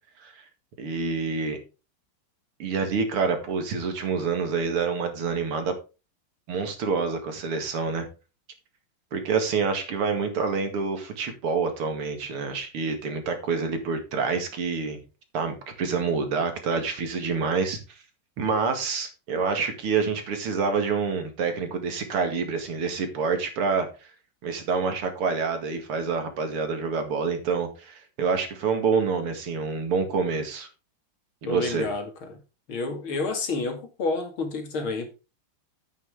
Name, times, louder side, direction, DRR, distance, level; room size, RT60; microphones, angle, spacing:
voice 1, 0.8-1.6 2.6-5.8 6.5-8.1 9.1-15.0 15.3-17.8 18.4-24.1 24.4-30.7 31.4-31.9, right 5 dB, 85° right, 2.9 m, -27 dB
voice 2, 31.5-32.4 32.7-35.1, left 3 dB, 70° left, 3.1 m, -29 dB
10.0 x 9.0 x 3.6 m
omnidirectional pair, 2.4 m